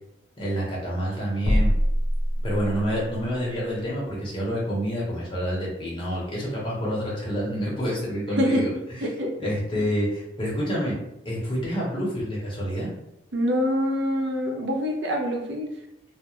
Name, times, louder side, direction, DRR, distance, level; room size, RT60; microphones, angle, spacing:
voice 1, 0.4-1.7 2.4-8.7 9.4-11.0 11.2-12.9, equal, 25° left, -5 dB, 0.8 m, -28 dB
sound 1, 1.4-3.0, equal, 80° left, 0.6 m, -23 dB
voice 2, 13.3-15.7, equal, 65° right, 1 dB, 0.5 m, -25 dB
2.4 x 2.0 x 3.0 m, 0.83 s
head